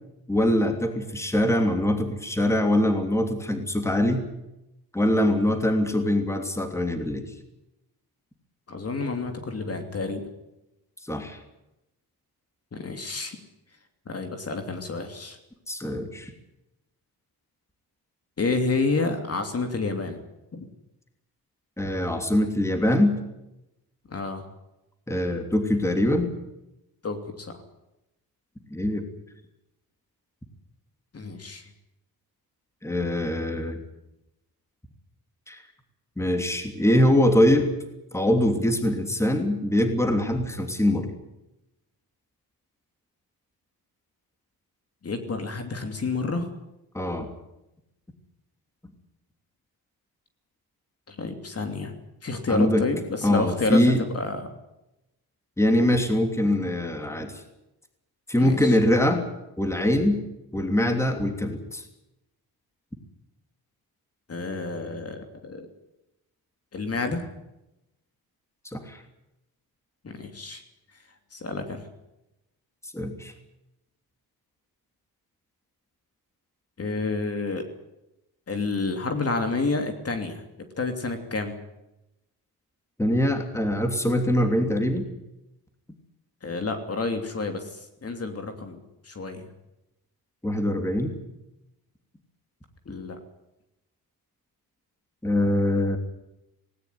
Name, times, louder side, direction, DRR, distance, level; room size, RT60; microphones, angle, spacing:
voice 1, 0.3-4.3 4.9-7.2 11.1-11.4 15.7-16.3 21.8-23.2 25.1-26.3 28.7-29.0 32.8-33.8 35.5-35.6 36.2-37.7 38.1-41.1 46.9-47.3 52.5-52.8 53.2-54.0 55.6-57.3 58.3-59.2 59.6-60.2 60.5-61.8 68.7-69.0 72.9-73.3 83.0-85.1 90.4-91.2 95.2-96.0, left 1 dB, 5° left, 5 dB, 3.0 m, -23 dB
voice 2, 8.7-10.3 12.7-13.4 14.1-15.4 18.4-20.2 20.5-20.7 24.1-24.5 27.0-27.6 31.1-31.6 45.0-46.5 51.1-52.0 52.2-54.5 58.4-58.8 64.3-65.7 66.7-67.2 70.0-70.6 71.3-71.8 76.8-77.6 78.5-80.4 80.8-81.6 86.4-88.8 89.0-89.5 92.9-93.2, left 3 dB, 40° left, 6 dB, 3.0 m, -29 dB
19.0 x 18.5 x 9.5 m, 0.91 s
wide cardioid pair, 130°, 38 cm